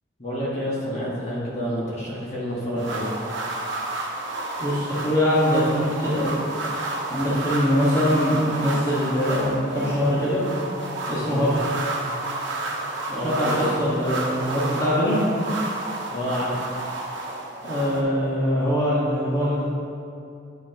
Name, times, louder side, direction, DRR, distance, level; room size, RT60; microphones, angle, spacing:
voice 1, 0.2-3.1 11.1-11.4 13.1-13.6 16.1-16.7, equal, 35° left, -7 dB, 1.6 m, -29 dB
sound 1, 2.8-18.0, right 2 dB, 80° right, 0.9 m, -31 dB
voice 2, 4.6-6.3 7.1-10.4 11.1-11.6 13.2-15.2 17.6-19.7, equal, 20° left, -10 dB, 1.5 m, -22 dB
9.4 x 6.2 x 2.9 m, 2.6 s
head